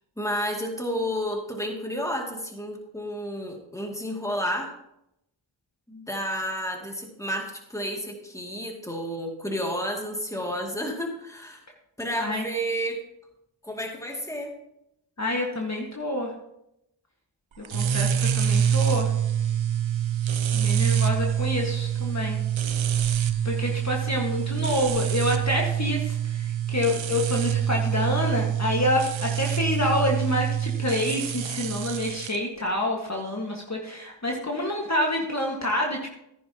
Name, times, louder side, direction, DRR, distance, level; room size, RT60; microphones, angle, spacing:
voice 1, 0.2-4.7 5.9-11.6 12.0-13.0 13.6-14.5, equal, 5° left, 1 dB, 2.5 m, -31 dB
voice 2, 15.2-16.3 17.6-19.1 20.5-22.4 23.4-36.1, left 1 dB, 35° left, -1 dB, 1.8 m, -27 dB
sound 1, 17.6-32.4, right 9 dB, 75° right, 0.8 m, -26 dB
14.5 x 10.0 x 3.0 m, 0.81 s
wide cardioid pair, 55°, 47 cm